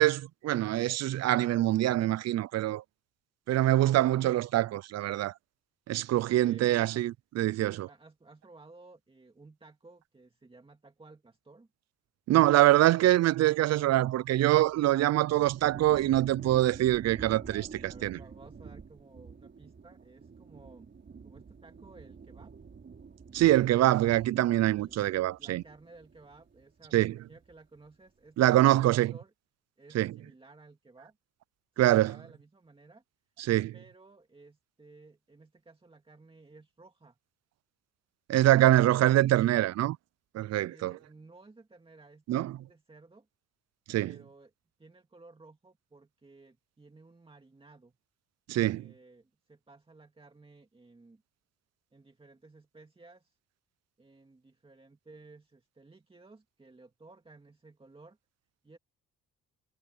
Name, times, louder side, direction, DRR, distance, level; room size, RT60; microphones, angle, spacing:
voice 1, 0.0-2.8 3.5-5.3 5.9-7.9 12.3-18.2 23.3-25.6 26.9-27.2 28.4-29.1 29.9-30.1 31.8-32.1 33.5-33.7 38.3-40.0 40.3-41.0 42.3-42.6 43.9-44.1 48.5-48.9, right 14 dB, 60° right, 0.5 m, -24 dB
voice 2, 6.4-6.8 7.9-11.7 17.5-20.9 21.2-22.5 24.5-25.0 25.4-29.3 29.8-31.2 31.7-33.0 33.7-37.2 40.6-43.3 44.0-44.5 44.8-47.9 48.6-51.2 51.9-53.4 54.0-58.2 58.6-58.8, right 3 dB, 20° right, 2.1 m, -56 dB
sound 1, 14.0-26.8 27.1-27.8, right 5 dB, 40° right, 4.4 m, -48 dB
cardioid pair, 90°, 30 cm